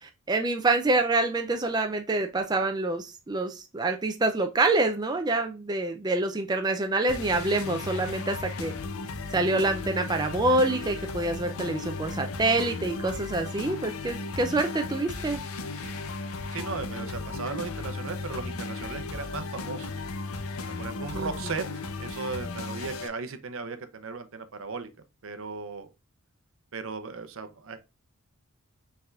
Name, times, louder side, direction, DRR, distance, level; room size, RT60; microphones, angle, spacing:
voice 1, 0.0-8.7 9.3-15.4 21.1-21.5, right 2 dB, 20° right, 0.4 m, -26 dB
sound 1, 7.1-23.1, left 3 dB, 80° left, 0.6 m, -35 dB
voice 2, 16.5-19.9 20.8-21.6 22.0-24.9 25.2-25.9 26.7-27.8, right 4 dB, 65° right, 0.7 m, -36 dB
5.5 x 3.5 x 2.4 m
head